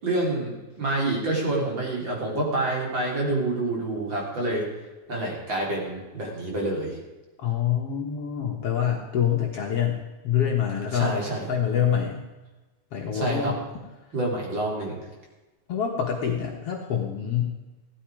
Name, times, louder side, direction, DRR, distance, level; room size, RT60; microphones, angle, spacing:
voice 1, 0.0-4.7 5.1-6.9 10.9-11.4 13.1-13.5 14.1-15.0, right 2 dB, 40° right, -2 dB, 4.6 m, -27 dB
voice 2, 7.4-11.2 11.5-12.2 12.9-13.5 15.7-17.6, left 9 dB, 60° left, 0 dB, 2.3 m, -26 dB
16.0 x 12.5 x 5.0 m, 1.1 s
omnidirectional pair, 3.4 m